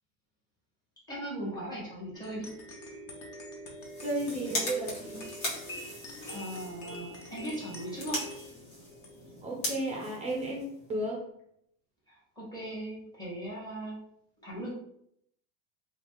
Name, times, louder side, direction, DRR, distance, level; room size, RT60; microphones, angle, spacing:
voice 1, 1.1-2.5 6.3-8.2 12.4-14.0 14.4-14.7, right 1 dB, 10° left, -7 dB, 1.2 m, -38 dB
sound 1, 2.1-10.4, equal, 30° left, 0.6 m, -45 dB
sound 2, 3.8-11.0, left 1 dB, 60° left, 1.5 m, -40 dB
voice 2, 4.0-5.3 9.4-11.2, right 1 dB, 15° right, -2 dB, 0.5 m, -33 dB
3.0 x 2.4 x 3.0 m, 0.71 s
supercardioid pair, 145°, 48 cm